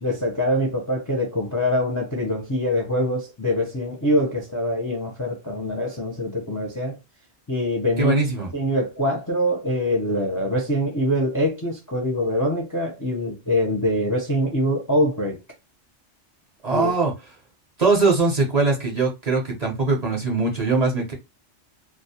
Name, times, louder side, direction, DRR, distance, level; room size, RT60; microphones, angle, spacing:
voice 1, 0.0-7.0 7.5-8.2 8.5-15.4 16.7-16.9, equal, 30° left, 0.4 m, -24 dB
voice 2, 8.0-8.5 16.6-17.1 17.8-21.1, right 3 dB, 45° right, 0.6 m, -21 dB
2.3 x 2.0 x 2.7 m
omnidirectional pair, 1.2 m